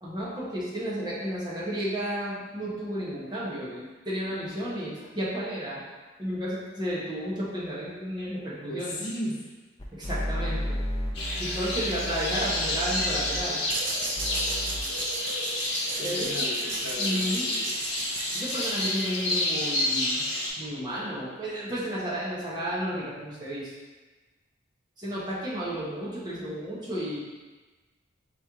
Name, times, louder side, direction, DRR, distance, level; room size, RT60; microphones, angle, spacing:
voice 1, 0.0-5.8 6.2-9.0 9.9-10.8 11.4-13.6 16.0-16.5 17.0-17.4 18.3-20.2 20.6-23.7 25.0-27.2, equal, 20° right, -8 dB, 1.0 m, -32 dB
voice 2, 8.7-9.5 15.9-17.7, equal, 90° left, -2 dB, 0.8 m, -36 dB
sound 1, 9.8-13.4 14.2-14.8, equal, 20° left, 0.5 m, -33 dB
sound 2, 11.1-20.5, left 1 dB, 65° left, 1.1 m, -29 dB
sound 3, 13.7-19.4, right 4 dB, 75° right, 0.5 m, -36 dB
4.2 x 3.0 x 3.6 m, 1.3 s
head